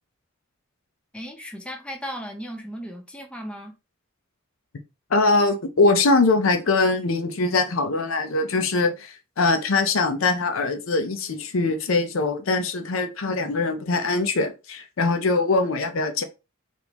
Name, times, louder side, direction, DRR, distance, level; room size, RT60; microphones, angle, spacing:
voice 1, 1.1-3.7, equal, 5° left, 0.5 m, -36 dB
voice 2, 5.1-16.2, left 3 dB, 75° left, 0.6 m, -22 dB
3.5 x 2.5 x 2.9 m
head